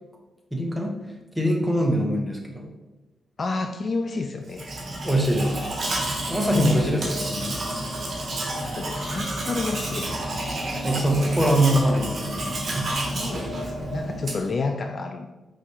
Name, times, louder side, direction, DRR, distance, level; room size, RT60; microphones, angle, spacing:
voice 1, 0.5-0.9 1.3-2.7 5.0-5.6 6.3-7.6 10.8-12.9, equal, 5° right, 1 dB, 1.1 m, -23 dB
voice 2, 3.4-4.7 6.4-7.0 8.6-10.2 12.9-15.3, left 3 dB, 50° left, 6 dB, 0.3 m, -31 dB
Domestic sounds home sounds, 4.5-14.6, right 1 dB, 55° right, 1.1 m, -30 dB
4.9 x 3.2 x 3.0 m, 1.1 s
supercardioid pair, 45°, 0 cm